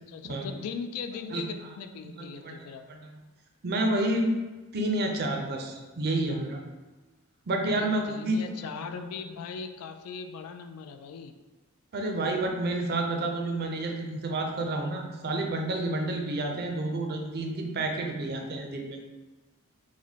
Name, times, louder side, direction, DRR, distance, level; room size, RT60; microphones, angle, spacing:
voice 1, 0.0-2.8 7.7-11.3, left 5 dB, 75° left, 9 dB, 0.3 m, -39 dB
voice 2, 2.2-2.6 2.9-3.2 3.6-4.3 4.7-6.6 7.5-8.7 11.9-19.0, right 2 dB, 50° right, 2 dB, 0.5 m, -29 dB
4.8 x 2.1 x 2.7 m, 1.2 s
head